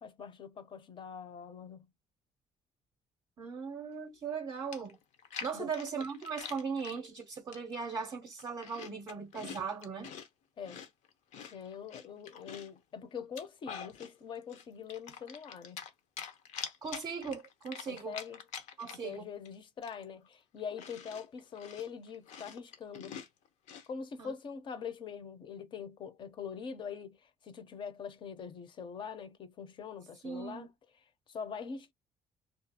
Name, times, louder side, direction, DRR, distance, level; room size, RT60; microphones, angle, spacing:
voice 1, 0.0-1.9 5.5-5.7 10.6-10.8 11.5-15.8 17.9-18.4 19.0-23.2 23.9-30.7 31.3-31.9, left 6 dB, 45° left, 0.5 m, -43 dB
voice 2, 3.4-5.0 5.4-10.1 16.8-18.2 18.8-19.3 24.2-24.3 30.2-30.7, right 5 dB, 35° right, 0.5 m, -38 dB
Chewing mastication, 4.3-4.4 4.7-7.0 7.5-7.9 8.2-10.3 10.6-12.8 13.2-14.1 14.5-15.9 16.2-19.2 19.4-19.5 19.8-23.9, left 7 dB, 85° left, 0.6 m, -46 dB
2.4 x 2.2 x 2.7 m
cardioid pair, 145°, 12 cm